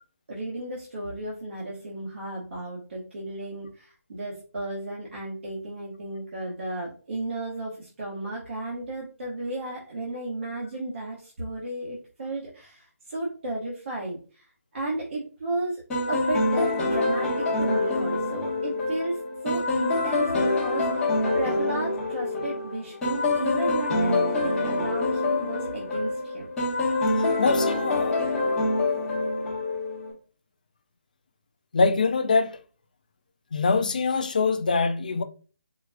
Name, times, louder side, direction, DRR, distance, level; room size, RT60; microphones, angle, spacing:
voice 1, 0.3-14.5 14.7-15.8 16.1-19.2 19.4-26.5, right 2 dB, 50° right, 1.5 m, -34 dB
sound 1, 15.9-30.1, left 2 dB, 5° left, 1.2 m, -26 dB
voice 2, 27.4-28.2 31.7-32.6 33.5-35.2, left 4 dB, 30° left, 0.4 m, -23 dB
4.6 x 3.1 x 2.4 m
hypercardioid pair, 175°, 9 cm